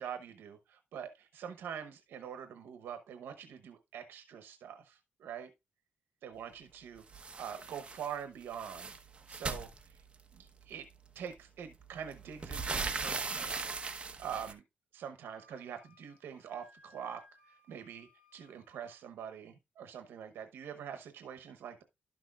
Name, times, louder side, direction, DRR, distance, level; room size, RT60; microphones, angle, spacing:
voice 1, 0.0-5.5 6.2-8.9 9.3-10.0 10.3-10.9 11.1-13.8 14.2-14.6 14.9-21.8, right 8 dB, 85° right, 0.9 m, -44 dB
sound 1, 7.1-8.1 8.4-10.4 11.3-11.4 11.8-14.5, right 4 dB, 30° right, 1.0 m, -39 dB
Wind instrument woodwind instrument, 15.2-19.0, left 1 dB, 40° left, 6.1 m, -63 dB
12.0 x 6.2 x 2.4 m
cardioid pair, 125°, 4 cm